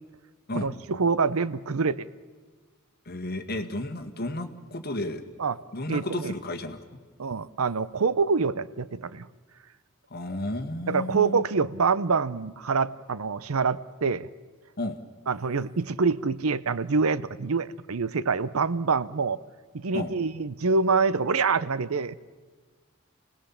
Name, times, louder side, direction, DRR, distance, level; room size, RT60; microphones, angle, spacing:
voice 1, 0.5-2.1 5.4-5.6 5.9-6.3 7.2-9.3 10.9-14.3 15.3-19.4 19.7-22.2, right 4 dB, 80° right, 17 dB, 0.7 m, -26 dB
voice 2, 3.1-5.2 5.7-6.8 10.1-11.5 14.8-15.0 19.9-20.1, left 1 dB, 45° left, 6 dB, 1.8 m, -32 dB
28.0 x 19.0 x 7.2 m, 1.4 s
head